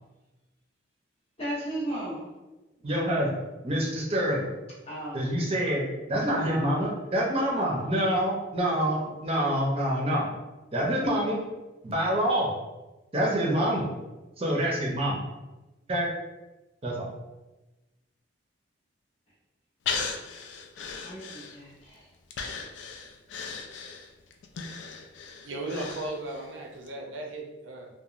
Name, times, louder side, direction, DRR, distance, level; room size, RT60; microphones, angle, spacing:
voice 1, 1.4-2.3 4.8-5.2 6.4-6.8 7.5-7.8 8.8-9.2 21.0-22.1, right 1 dB, 30° left, -6 dB, 0.8 m, -36 dB
voice 2, 2.8-3.3 3.6-4.5 5.1-5.8 6.1-10.3 10.7-11.4 11.8-12.5 13.1-13.8 14.4-15.2 15.9-16.1 16.8-17.1, equal, 30° right, -3 dB, 0.5 m, -26 dB
Breathing, 19.9-21.8 22.3-26.5 26.9-27.0, left 5 dB, 70° left, 0.3 m, -36 dB
voice 3, 25.4-27.9, right 2 dB, 80° right, 0 dB, 0.5 m, -36 dB
2.9 x 2.2 x 2.4 m, 1.1 s
head